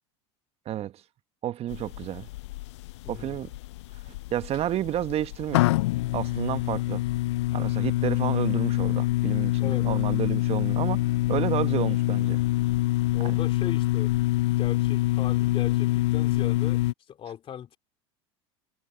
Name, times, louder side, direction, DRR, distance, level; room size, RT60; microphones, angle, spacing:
voice 1, 0.6-1.0 1.4-2.3 3.1-3.5 4.1-5.7 6.1-7.0 7.5-12.4 13.2-13.4, right 12 dB, 45° right, 1.3 m, -31 dB
sound 1, 1.7-16.9, left 17 dB, 75° left, 0.5 m, -26 dB
voice 2, 3.0-3.5 9.6-9.9 13.1-14.1 14.6-16.8 17.1-17.8, left 9 dB, 40° left, 2.8 m, -38 dB
hypercardioid pair, 85°, 15 cm